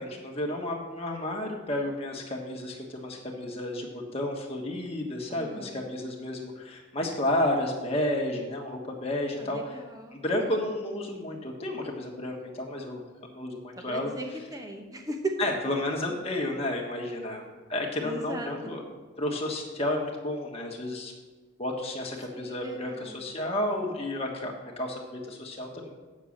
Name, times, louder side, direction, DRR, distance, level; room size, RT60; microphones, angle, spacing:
voice 1, 0.0-9.7 10.1-14.1 15.4-17.4 17.7-18.8 19.2-21.1 21.6-25.9, left 1 dB, 30° left, 0 dB, 1.5 m, -31 dB
voice 2, 5.3-5.9 9.4-10.2 13.8-15.5 18.0-18.7 22.3-23.2, right 2 dB, 15° right, 3 dB, 0.9 m, -37 dB
8.6 x 6.7 x 6.5 m, 1.3 s
head